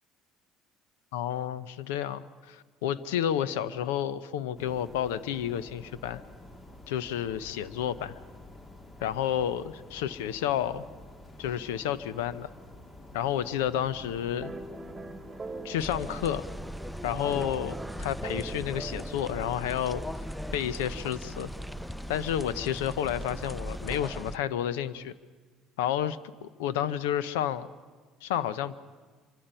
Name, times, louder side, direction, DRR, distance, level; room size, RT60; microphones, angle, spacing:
voice 1, 1.1-6.2 6.9-8.2 9.0-10.9 11.4-12.5 13.1-14.5 15.6-16.5 17.0-20.0 20.5-21.5 22.1-25.1 25.8-27.7 28.2-28.7, left 10 dB, 85° left, 16 dB, 0.7 m, -30 dB
sound 1, 4.6-24.0, left 1 dB, 30° left, 2.7 m, -49 dB
sound 2, 14.4-20.1, right 2 dB, 20° right, 1.8 m, -42 dB
sound 3, 15.8-24.4, equal, ahead, 0.6 m, -39 dB
26.0 x 24.0 x 5.5 m, 1.4 s
hypercardioid pair, 65°, 0 cm